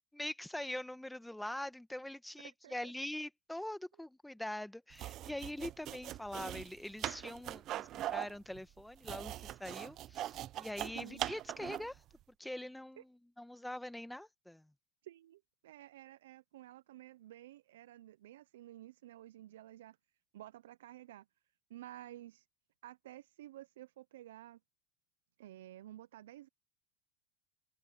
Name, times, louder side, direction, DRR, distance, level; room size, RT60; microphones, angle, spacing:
voice 1, 0.1-12.0 12.4-14.7, left 1 dB, 5° left, 1.2 m, -43 dB
voice 2, 2.4-2.9 10.9-11.2 13.0-13.1 15.0-20.0 20.3-21.3 21.7-22.5 22.8-24.6 25.4-26.5, right 14 dB, 85° right, 0.5 m, -52 dB
sound 1, 4.9-12.0, right 13 dB, 40° right, 0.7 m, -41 dB
supercardioid pair, 120°, 0 cm